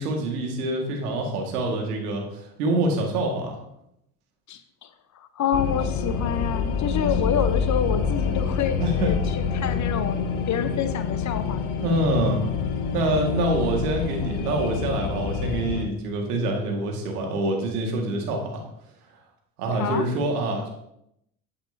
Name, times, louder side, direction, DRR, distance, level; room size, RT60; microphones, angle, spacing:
voice 1, 0.0-3.6 8.8-9.1 11.8-12.4 12.9-18.6 19.6-20.7, right 2 dB, 75° right, 1 dB, 2.2 m, -26 dB
voice 2, 4.5-4.9 5.1-10.2 10.5-11.7 13.3-13.7 19.8-20.1, left 8 dB, 40° left, 10 dB, 1.0 m, -28 dB
sound 1, 5.5-15.8, left 6 dB, 70° left, 1.3 m, -26 dB
10.5 x 8.2 x 2.8 m, 0.77 s
hypercardioid pair, 70°, 46 cm